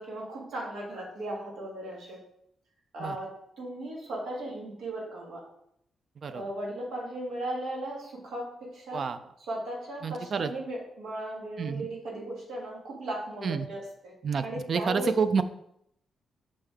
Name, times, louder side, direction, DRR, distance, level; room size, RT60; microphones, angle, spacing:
voice 1, 0.0-2.2 2.9-3.3 3.6-5.4 6.3-9.0 9.5-14.1 14.4-15.1, right 1 dB, 85° right, -3 dB, 1.8 m, -36 dB
voice 2, 10.0-10.5 11.6-11.9 13.4-13.7 14.2-15.4, right 5 dB, 45° right, 12 dB, 0.4 m, -29 dB
5.4 x 5.2 x 3.5 m, 0.75 s
cardioid pair, 135°, 0 cm